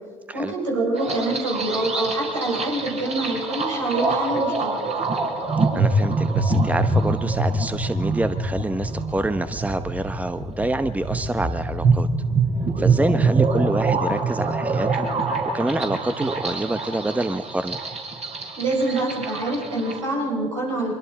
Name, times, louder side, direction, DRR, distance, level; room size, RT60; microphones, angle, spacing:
voice 1, 0.3-4.8 18.6-20.9, right 2 dB, 90° right, -3 dB, 7.2 m, -25 dB
sound 1, 0.9-20.0, right 3 dB, 40° right, 5.2 m, -25 dB
voice 2, 5.7-12.1 12.8-15.1 15.5-17.8, right 1 dB, 10° right, 11 dB, 0.9 m, -27 dB
25.0 x 23.0 x 5.3 m, 1.6 s
hypercardioid pair, 60°, 16 cm